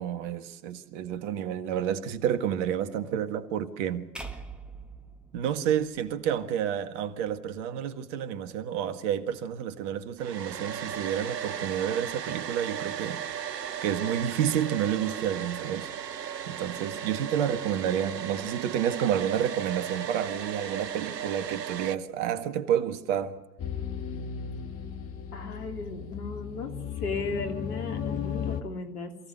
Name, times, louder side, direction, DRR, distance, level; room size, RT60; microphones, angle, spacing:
voice 1, 0.0-4.1 5.3-13.5 13.8-15.9 16.5-23.4, right 9 dB, 45° right, 1.7 m, -30 dB
sound 1, 4.1-6.4, right 3 dB, ahead, 1.8 m, -43 dB
Domestic sounds home sounds, 10.2-22.0, right 8 dB, 85° right, 0.8 m, -36 dB
sound 2, 23.6-28.6, left 7 dB, 30° left, 1.8 m, -35 dB
voice 2, 25.3-29.2, left 4 dB, 65° left, 3.2 m, -35 dB
27.0 x 16.5 x 6.8 m
figure-of-eight pair, 100°, 48 cm